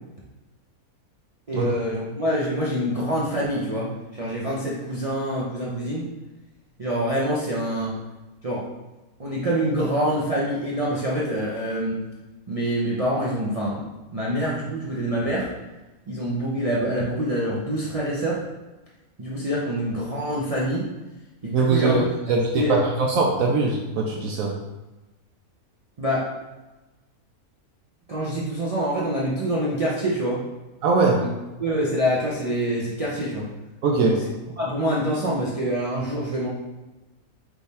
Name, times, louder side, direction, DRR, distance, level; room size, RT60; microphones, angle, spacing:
voice 1, 1.5-6.1 6.8-8.0 8.4-8.7 9.2-12.0 12.5-15.5 16.1-18.4 19.2-20.8 21.4-22.0 22.5-22.8 26.0-26.3 28.1-30.4 31.2-31.3 31.6-33.5 34.0-34.2 34.6-36.5, equal, 55° right, -6 dB, 0.4 m, -26 dB
voice 2, 21.5-22.0 22.3-24.5 30.8-31.2 33.8-34.3, right 3 dB, 75° right, -1 dB, 1.0 m, -21 dB
3.5 x 3.0 x 4.1 m, 1.1 s
omnidirectional pair, 1.5 m